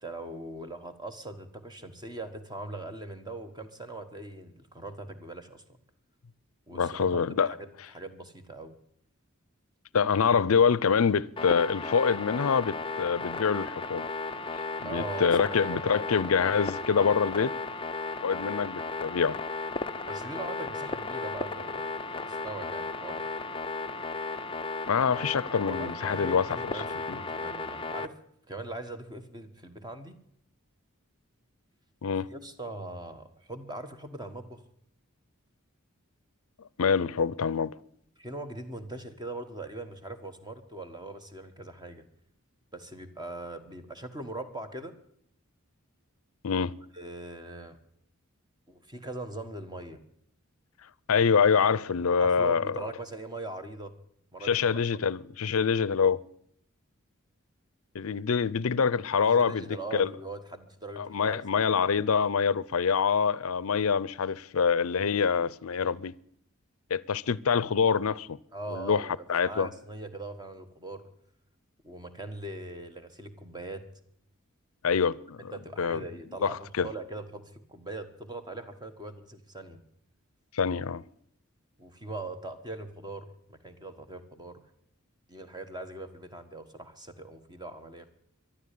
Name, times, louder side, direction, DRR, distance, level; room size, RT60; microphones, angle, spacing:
voice 1, 0.0-5.6 6.7-8.7 14.8-16.3 20.1-21.9 22.2-23.3 25.7-28.2 28.5-30.2 32.3-34.6 38.2-42.1 42.7-44.9 46.9-47.8 48.7-50.0 52.2-53.9 54.3-54.8 59.2-61.7 62.0-62.1 68.5-71.0 71.8-73.8 75.5-79.8 81.8-84.6 85.3-88.1, right 2 dB, 20° right, 1.4 m, -41 dB
voice 2, 6.7-7.5 9.9-14.1 14.8-17.5 18.2-19.4 24.9-26.7 27.1-27.2 32.0-32.3 36.8-37.7 46.4-46.7 51.1-52.7 54.4-56.2 57.9-59.7 59.9-60.1 61.0-66.1 66.9-68.4 68.7-69.7 74.8-75.5 75.8-76.0 76.4-76.9 80.5-81.0, left 6 dB, 75° left, 0.5 m, -25 dB
sound 1, 11.4-28.1, left 3 dB, 25° left, 0.5 m, -35 dB
13.5 x 11.5 x 8.4 m
head